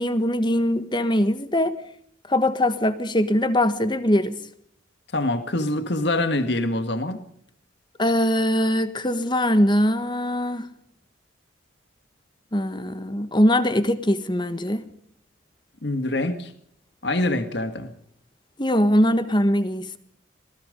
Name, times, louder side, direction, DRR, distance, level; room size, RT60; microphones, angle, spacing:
voice 1, 0.0-1.7 2.3-4.4 8.0-10.7 12.5-14.8 18.6-20.0, left 1 dB, 25° left, 1.5 m, -22 dB
voice 2, 5.1-7.2 15.8-16.5 17.0-17.9, left 2 dB, 60° left, 1.9 m, -25 dB
26.5 x 19.0 x 5.3 m
head